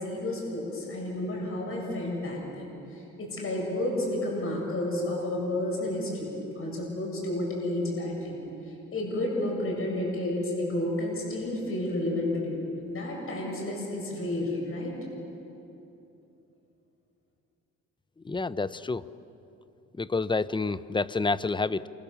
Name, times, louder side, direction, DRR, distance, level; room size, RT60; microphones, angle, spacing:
voice 1, 0.0-8.4 8.9-12.6 12.9-14.9, left 1 dB, 45° left, -1 dB, 7.9 m, -31 dB
voice 2, 18.2-19.0 20.0-21.9, left 3 dB, 15° left, 15 dB, 0.7 m, -28 dB
28.5 x 26.0 x 7.2 m, 2.9 s
cardioid pair, 90°, 30 cm